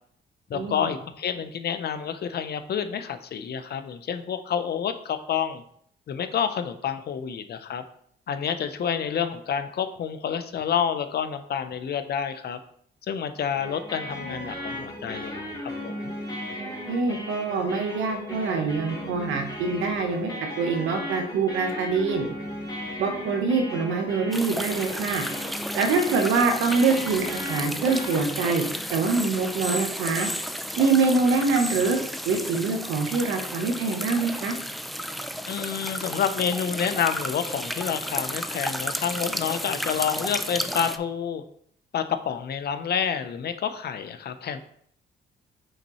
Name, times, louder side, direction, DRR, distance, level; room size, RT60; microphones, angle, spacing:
voice 1, 0.5-5.6 6.1-7.8 8.3-12.6 13.1-16.1 35.5-41.4 41.9-44.7, left 8 dB, 55° left, 9 dB, 0.7 m, -29 dB
sound 1, 13.5-28.2, left 1 dB, 20° left, 2.3 m, -36 dB
voice 2, 16.6-20.3 20.6-22.3 23.0-25.2 25.7-28.6 28.9-30.3 30.8-32.0 32.2-34.5, right 4 dB, 90° right, 5 dB, 1.0 m, -24 dB
sound 2, 24.3-41.0, equal, ahead, 0.3 m, -33 dB
5.8 x 5.4 x 3.0 m, 0.64 s
cardioid pair, 90°, 20 cm